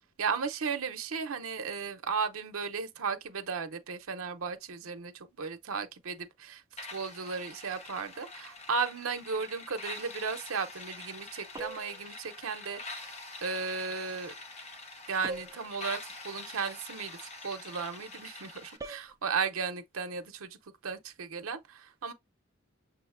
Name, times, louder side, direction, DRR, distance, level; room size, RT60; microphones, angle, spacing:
voice 1, 0.2-6.6 6.9-14.3 15.1-20.6 20.8-22.1, right 5 dB, 80° right, 0.7 m, -35 dB
sound 1, 6.8-18.8, left 3 dB, 30° left, 0.7 m, -45 dB
sound 2, 11.5-12.0 15.2-15.7 18.8-19.1, right 2 dB, 15° right, 0.4 m, -41 dB
6.4 x 2.6 x 2.5 m
head